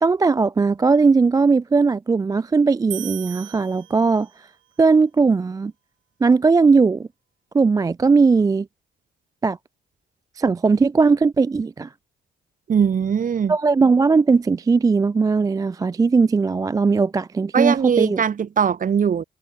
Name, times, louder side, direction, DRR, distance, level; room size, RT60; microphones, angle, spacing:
voice 1, 0.0-4.3 4.8-5.7 6.2-7.1 7.5-8.7 9.4-9.6 10.4-11.9 13.5-18.2, right 4 dB, 20° right, 0.3 m, -18 dB
sound 1, 2.9-4.5, right 13 dB, 75° right, 1.1 m, -37 dB
voice 2, 12.7-13.6 17.5-19.2, right 7 dB, 40° right, 1.2 m, -20 dB
cardioid pair, 90°, 20 cm